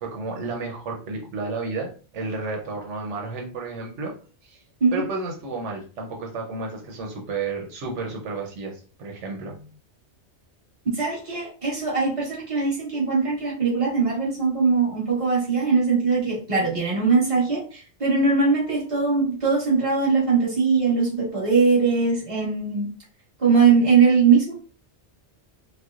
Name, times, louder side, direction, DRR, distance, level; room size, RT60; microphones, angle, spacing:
voice 1, 0.0-4.2 4.4-4.6 4.9-9.7, right 3 dB, 90° right, 1 dB, 1.1 m, -32 dB
voice 2, 10.9-22.9 23.4-24.5, right 5 dB, 30° right, -5 dB, 1.4 m, -21 dB
4.2 x 2.2 x 2.4 m, 0.39 s
omnidirectional pair, 1.2 m